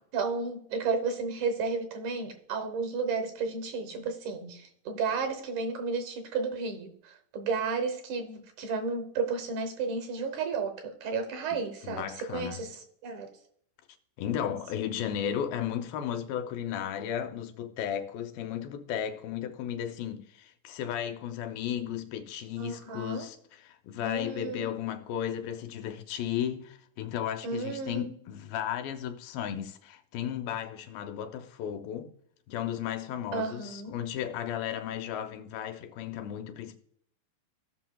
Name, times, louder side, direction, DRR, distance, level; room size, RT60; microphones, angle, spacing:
voice 1, 0.1-13.3 22.6-23.3 24.0-24.7 27.4-28.1 33.3-33.9, right 4 dB, 70° right, 2.1 m, -33 dB
voice 2, 11.8-12.6 14.2-32.1 32.5-36.8, left 9 dB, 85° left, 2.5 m, -34 dB
16.0 x 6.0 x 2.3 m
omnidirectional pair, 4.0 m